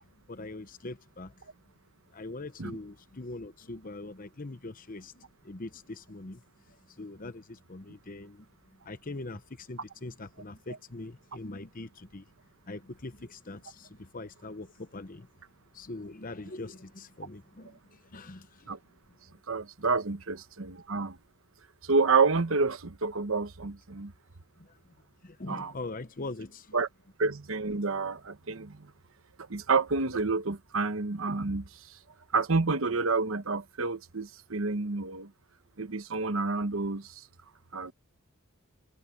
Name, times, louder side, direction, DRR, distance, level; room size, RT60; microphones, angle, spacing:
voice 1, 0.3-1.3 2.1-6.4 7.0-8.5 8.8-12.2 12.7-15.3 15.7-18.7 24.6-24.7 25.2-26.8, left 2 dB, 40° left, 1.0 m, -42 dB
voice 2, 19.5-21.2 21.8-24.1 25.5-25.7 26.7-26.9 27.2-28.9 29.5-31.7 32.3-35.3 35.8-37.2 37.7-37.9, right 4 dB, 65° right, 1.1 m, -29 dB
head